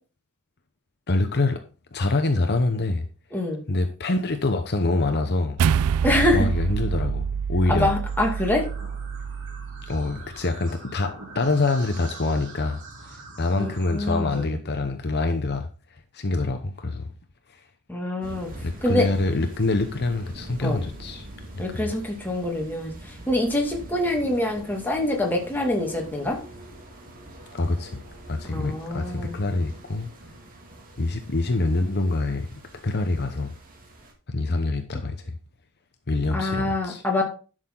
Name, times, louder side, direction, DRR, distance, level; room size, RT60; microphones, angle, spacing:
voice 1, 1.1-1.6 1.9-3.1 3.7-5.6 6.3-7.2 7.5-7.9 9.9-12.8 13.0-15.7 16.1-17.1 17.5-17.6 18.6-21.3 21.5-21.9 27.5-28.0 28.3-30.1 31.0-33.5 34.3-35.4 36.1-37.0, left 2 dB, 50° left, 7 dB, 0.9 m, -25 dB
voice 2, 3.3-3.6 6.0-6.5 7.7-8.6 13.6-14.5 17.9-18.5 18.8-19.1 20.6-20.8 21.6-26.4 28.5-29.4 36.3-37.2, left 1 dB, 10° left, 0 dB, 2.3 m, -25 dB
sound 1, 5.6-10.1, right 7 dB, 80° right, 0.4 m, -26 dB
sound 2, 8.0-14.4, right 2 dB, 60° right, 3.4 m, -44 dB
sound 3, 18.2-34.1, right 1 dB, 40° right, 2.3 m, -44 dB
11.0 x 6.5 x 3.9 m, 0.36 s
head